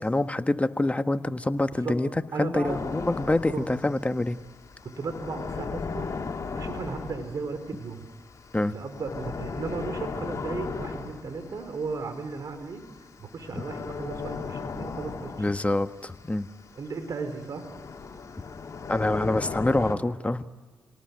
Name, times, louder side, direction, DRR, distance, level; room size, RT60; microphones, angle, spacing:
voice 1, 0.0-2.1 2.4-4.4 8.5-8.7 15.4-16.5 18.9-20.4, left 2 dB, 20° left, 10 dB, 1.4 m, -26 dB
voice 2, 2.3-2.8 3.5-3.7 4.8-6.1 6.5-8.1 8.7-12.8 13.2-15.5 16.7-17.7, right 4 dB, 60° right, 9 dB, 3.7 m, -35 dB
sound 1, 2.7-20.0, left 4 dB, 50° left, 2.8 m, -37 dB
27.0 x 18.5 x 9.4 m, 1.5 s
supercardioid pair, 45°, 7 cm